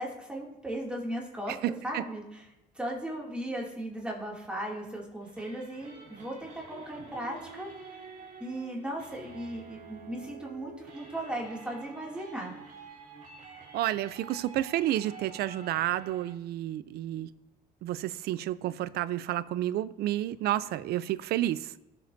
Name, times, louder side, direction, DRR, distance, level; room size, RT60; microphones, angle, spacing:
voice 1, 0.0-2.5 2.7-8.0 8.4-12.5, right 1 dB, 5° right, 2.6 m, -37 dB
voice 2, 1.5-2.0 13.7-17.3 17.8-21.7, right 13 dB, 70° right, 0.5 m, -30 dB
sound 1, 5.2-16.3, right 5 dB, 50° right, 3.0 m, -48 dB
18.0 x 7.4 x 2.7 m
cardioid pair, 110°, 17 cm